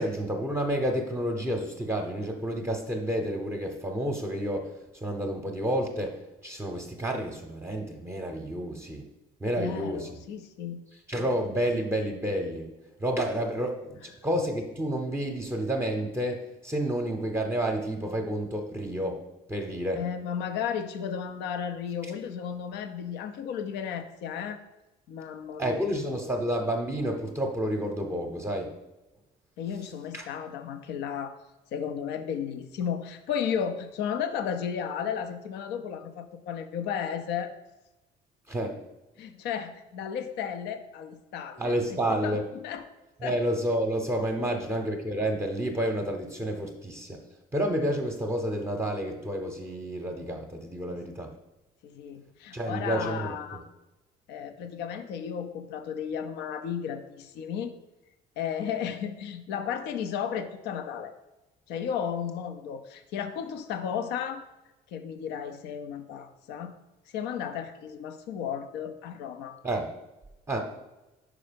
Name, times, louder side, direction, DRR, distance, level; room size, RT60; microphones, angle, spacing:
voice 1, 0.0-4.7 5.0-9.0 9.4-10.1 11.1-12.7 13.0-19.2 19.5-20.0 25.6-28.7 30.1-30.2 38.5-38.8 41.6-42.4 43.2-47.2 47.5-51.3 52.5-53.3 69.6-69.9 70.5-70.6, right 1 dB, 15° right, 2 dB, 0.7 m, -30 dB
voice 2, 9.5-10.8 20.0-24.6 25.1-25.9 29.6-31.3 31.7-37.5 39.2-42.4 42.6-42.8 43.2-43.4 44.5-44.6 50.9-51.0 51.8-53.6 54.3-57.7 58.4-61.1 61.7-64.5 64.9-66.7 67.1-69.6, left 8 dB, 85° left, 9 dB, 0.6 m, -34 dB
5.3 x 4.9 x 5.1 m, 1.0 s
cardioid pair, 110°, 17 cm